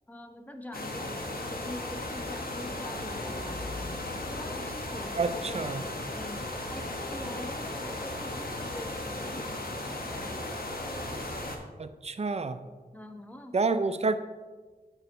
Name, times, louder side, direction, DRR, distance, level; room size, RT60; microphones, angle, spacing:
voice 1, 0.1-9.5 10.1-10.4 12.9-13.6, left 1 dB, 10° left, 5 dB, 0.7 m, -44 dB
sound 1, 0.7-11.6, left 1 dB, 65° left, 1.0 m, -36 dB
voice 2, 5.2-5.8 11.8-12.6 13.5-14.2, right 3 dB, 40° right, 10 dB, 0.4 m, -28 dB
9.2 x 4.0 x 4.4 m, 1.3 s
wide cardioid pair, 80°, 16 cm